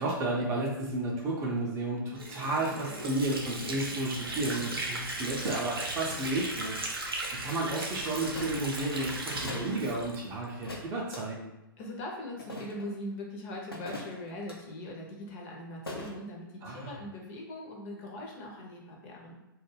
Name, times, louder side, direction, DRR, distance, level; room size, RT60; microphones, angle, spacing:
voice 1, 0.0-11.5 16.6-16.9, right 2 dB, 25° right, -3 dB, 0.5 m, -32 dB
Water / Sink (filling or washing), 2.2-10.7, right 2 dB, 80° right, 0.6 m, -37 dB
sound 1, 7.2-7.3 8.3-8.7 9.4-9.8 10.6-11.2 12.4-12.9 13.7-14.6 15.9-16.2, left 1 dB, 85° left, 0.6 m, -41 dB
voice 2, 11.8-19.4, left 1 dB, 35° left, -1 dB, 0.6 m, -41 dB
2.3 x 2.0 x 3.2 m, 0.93 s
figure-of-eight pair, 110°, 12 cm